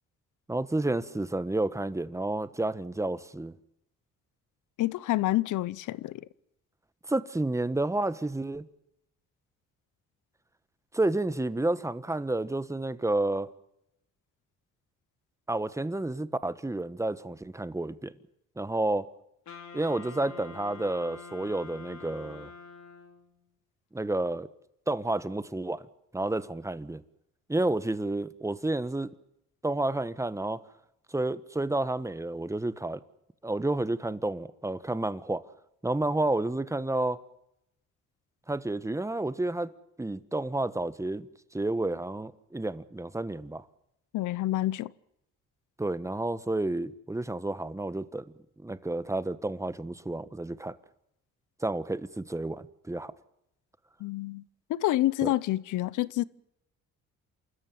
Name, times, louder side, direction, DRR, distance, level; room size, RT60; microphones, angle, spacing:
voice 1, 0.5-3.5 7.1-8.6 10.9-13.5 15.5-18.1 18.6-19.1 19.7-22.5 23.9-24.5 24.9-25.9 26.1-27.0 27.5-29.1 29.6-30.6 31.1-33.0 33.4-35.4 35.8-37.2 38.5-39.7 40.0-41.3 41.5-43.6 45.8-48.2 48.6-50.8 51.6-53.1 55.2-55.3, right 2 dB, 10° right, 1.3 m, -30 dB
voice 2, 4.8-6.3 44.1-44.9 54.0-54.4 54.7-56.2, left 15 dB, 80° left, 0.9 m, -28 dB
Wind instrument woodwind instrument, 19.5-23.3, left 4 dB, 65° left, 5.7 m, -46 dB
28.5 x 13.5 x 9.4 m
cardioid pair, 90°, 30 cm